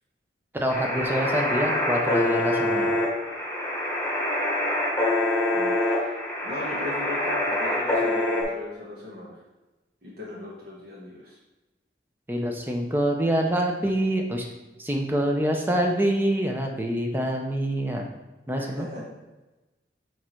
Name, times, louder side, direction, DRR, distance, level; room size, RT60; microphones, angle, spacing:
voice 1, 0.5-2.9 12.3-14.4 14.8-18.1 18.5-18.9, right 1 dB, 10° right, 2 dB, 0.7 m, -25 dB
sound 1, 0.7-8.4, left 1 dB, 10° left, 1.3 m, -25 dB
voice 2, 5.5-6.2 6.4-9.4 10.0-11.4 18.6-19.0, left 2 dB, 55° right, -6 dB, 1.3 m, -38 dB
4.7 x 4.6 x 4.4 m, 1.1 s
head